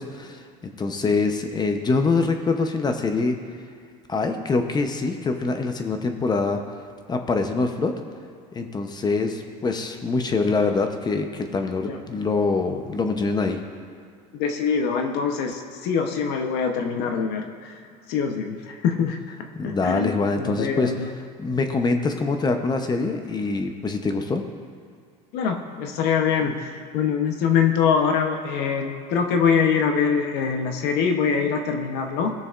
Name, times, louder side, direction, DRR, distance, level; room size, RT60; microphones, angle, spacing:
voice 1, 0.0-3.4 4.1-6.6 7.1-7.9 8.5-13.6 19.6-20.9 21.4-24.4, left 3 dB, 25° left, 6 dB, 0.8 m, -24 dB
voice 2, 14.3-17.8 18.1-19.3 19.6-21.1 25.3-32.3, left 6 dB, 70° left, 4 dB, 0.9 m, -24 dB
16.5 x 6.7 x 2.5 m, 2.2 s
supercardioid pair, 115°, 17 cm